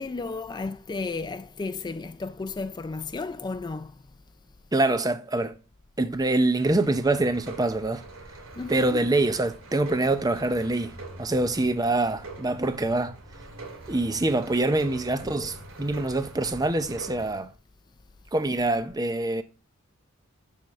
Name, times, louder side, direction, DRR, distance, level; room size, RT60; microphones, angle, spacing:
voice 1, 0.0-4.0 8.6-9.0, left 3 dB, 20° left, 0.3 m, -33 dB
voice 2, 4.7-5.6 6.0-8.0 8.7-13.2 13.9-17.5 18.3-19.4, right 2 dB, 20° right, 0.6 m, -25 dB
sound 1, 6.6-17.4, right 2 dB, 75° right, 2.5 m, -44 dB
7.5 x 3.7 x 6.4 m
head